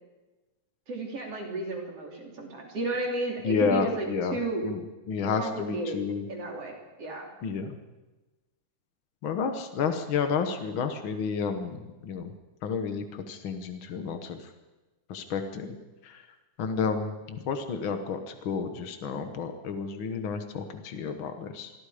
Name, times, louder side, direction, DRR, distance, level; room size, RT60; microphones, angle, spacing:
voice 1, 0.9-4.6 5.4-6.0 6.3-7.3, right 2 dB, 45° right, 0 dB, 4.2 m, -33 dB
voice 2, 3.4-6.3 7.4-7.8 9.2-12.3 12.6-14.5 15.1-15.8 16.0-16.3 16.6-21.7, left 5 dB, 70° left, 7 dB, 1.1 m, -31 dB
26.0 x 21.5 x 5.1 m, 1.2 s
omnidirectional pair, 4.1 m